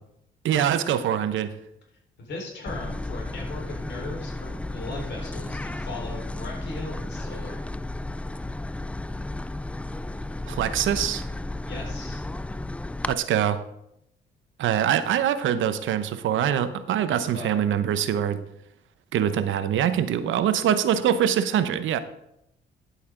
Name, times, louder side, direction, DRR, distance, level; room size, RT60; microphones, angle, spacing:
voice 1, 0.4-1.5 10.5-11.3 13.1-13.6 14.6-18.4 19.1-22.0, right 9 dB, 75° right, 11 dB, 0.8 m, -24 dB
voice 2, 2.2-7.6 11.7-12.2 17.1-17.6, left 2 dB, 60° left, -1 dB, 4.3 m, -38 dB
sound 1, 2.7-13.1, left 2 dB, 5° left, 0.3 m, -33 dB
11.0 x 8.3 x 3.8 m, 0.79 s
cardioid pair, 90°, 20 cm